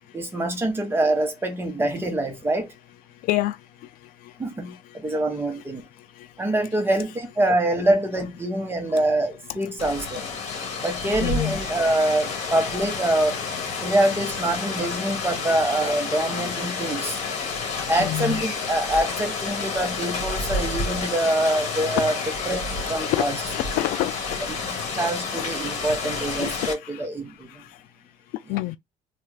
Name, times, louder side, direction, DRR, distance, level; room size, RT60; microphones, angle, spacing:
voice 1, 0.1-2.7 4.4-5.8 6.4-10.3 10.8-13.4 13.8-17.2 17.9-22.2 22.5-23.4 24.7-27.6, right 1 dB, 15° right, 0.8 m, -25 dB
Rain, 9.8-26.7, left 4 dB, 50° left, 1.5 m, -30 dB
voice 2, 11.2-11.6 13.5-13.6 14.8-14.9 18.0-18.4 23.0-23.2 23.5-24.1 26.4-26.5 28.5-28.8, left 16 dB, 70° left, 0.4 m, -26 dB
3.3 x 2.4 x 3.2 m
cardioid pair, 145°, 15 cm